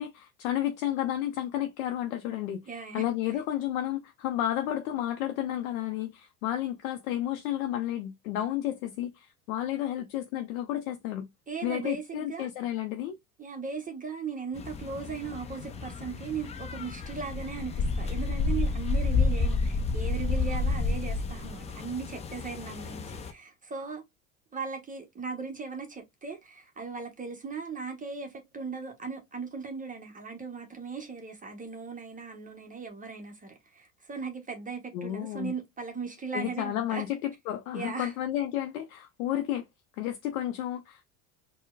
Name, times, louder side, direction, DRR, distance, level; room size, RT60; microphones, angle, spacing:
voice 1, 0.0-2.6 2.9-11.3 11.6-13.2 34.9-35.5 36.3-39.7 40.0-41.1, left 12 dB, 70° left, 0.6 m, -32 dB
voice 2, 2.7-3.4 11.5-12.5 13.4-24.0 24.5-37.0 37.7-38.1, right 5 dB, 20° right, 0.7 m, -38 dB
sound 1, 14.6-23.3, left 3 dB, 15° left, 0.3 m, -30 dB
4.3 x 2.1 x 2.2 m
hypercardioid pair, 80°, 42 cm